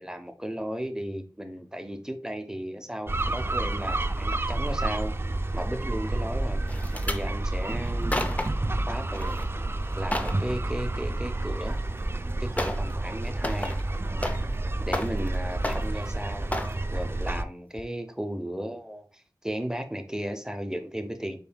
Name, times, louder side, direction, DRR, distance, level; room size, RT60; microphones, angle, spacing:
voice 1, 0.0-5.1 5.5-6.6 7.1-8.1 8.9-9.4 10.0-11.8 12.4-13.7 14.8-16.4 16.9-21.4, equal, 10° right, 7 dB, 0.8 m, -35 dB
sound 1, 3.1-17.4, right 2 dB, 30° right, 0.3 m, -29 dB
sound 2, 6.7-7.2 7.9-8.7 9.1-9.5 9.8-10.4 11.8-11.9 12.6-12.9 13.2-14.6 14.9-15.3 15.6-16.1 16.5-16.8 17.3-17.5 17.8-17.9, left 1 dB, 20° left, 0.6 m, -32 dB
5.4 x 4.3 x 2.2 m, 0.38 s
wide cardioid pair, 50°, 8 cm